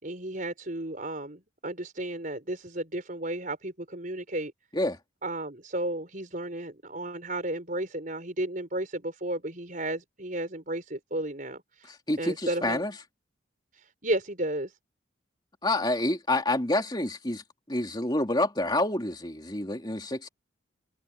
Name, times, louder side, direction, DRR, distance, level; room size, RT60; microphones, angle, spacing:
voice 1, 0.0-4.5 5.2-11.9 12.2-12.8 13.8-14.7, right 1 dB, 40° right, 5.3 m, -33 dB
voice 2, 11.9-12.9 15.6-17.4 17.7-20.3, left 1 dB, 20° left, 3.1 m, -28 dB
head